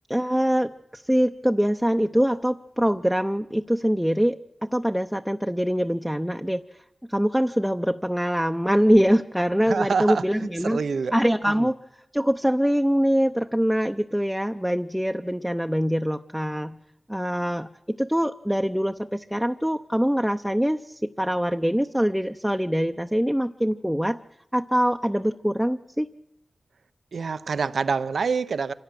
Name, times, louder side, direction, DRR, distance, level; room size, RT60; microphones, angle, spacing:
voice 1, 0.1-4.4 4.7-6.6 7.1-10.8 11.1-11.8 12.1-16.8 17.1-17.7 18.0-24.2 24.5-26.1, equal, 5° right, 0.8 m, -23 dB
voice 2, 9.7-11.1 11.5-11.7 27.1-28.7, right 5 dB, 85° right, 0.8 m, -26 dB
26.0 x 17.0 x 7.6 m
cardioid pair, 50°, 0 cm